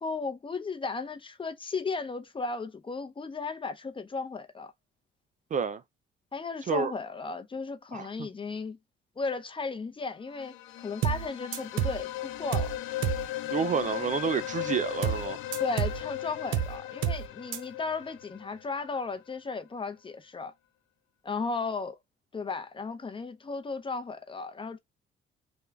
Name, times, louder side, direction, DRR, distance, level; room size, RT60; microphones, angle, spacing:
voice 1, 0.0-4.7 6.3-8.8 9.2-12.8 15.6-20.5 21.2-22.0 22.3-24.8, left 4 dB, 25° left, 0.6 m, -35 dB
voice 2, 5.5-5.8 6.7-6.9 7.9-8.3 13.5-15.4, right 6 dB, 40° right, 0.4 m, -29 dB
sound 1, 10.3-19.1, left 14 dB, 80° left, 0.5 m, -37 dB
sound 2, 11.0-11.3 11.5-12.0 12.5-12.8 13.0-13.3 15.0-15.3 15.5-16.0 16.5-16.8 17.0-17.3 17.5-17.6, right 10 dB, 80° right, 0.6 m, -29 dB
3.4 x 2.3 x 3.3 m
cardioid pair, 90°, 20 cm